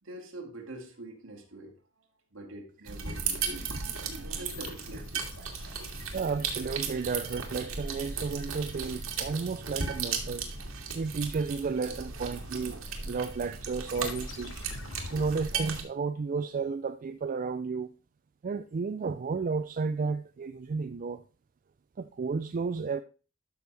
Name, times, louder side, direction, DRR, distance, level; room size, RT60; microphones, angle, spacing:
voice 1, 0.0-3.7 4.3-5.3, right 1 dB, 65° right, 2.3 m, -45 dB
sound 1, 2.9-15.8, right 5 dB, 85° right, 1.9 m, -36 dB
sound 2, 4.5-9.5 13.9-15.4, left 5 dB, 65° left, 1.0 m, -49 dB
voice 2, 6.1-10.5 10.9-14.5 15.1-17.9 18.4-21.2 22.0-23.0, right 4 dB, 40° right, 0.4 m, -32 dB
12.0 x 6.3 x 3.3 m
head